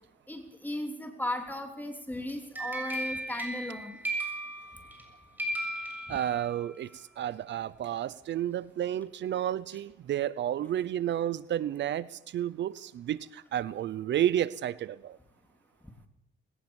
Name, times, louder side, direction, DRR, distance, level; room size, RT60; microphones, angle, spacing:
voice 1, 0.3-4.0 6.1-6.2, left 1 dB, 10° left, 5 dB, 3.3 m, -36 dB
sound 1, 2.3-5.1 5.4-6.7, right 1 dB, 10° right, 6.8 m, -36 dB
voice 2, 6.1-15.2, right 11 dB, 65° right, 19 dB, 0.7 m, -31 dB
20.5 x 18.5 x 7.2 m, 0.75 s
cardioid pair, 90°, 20 cm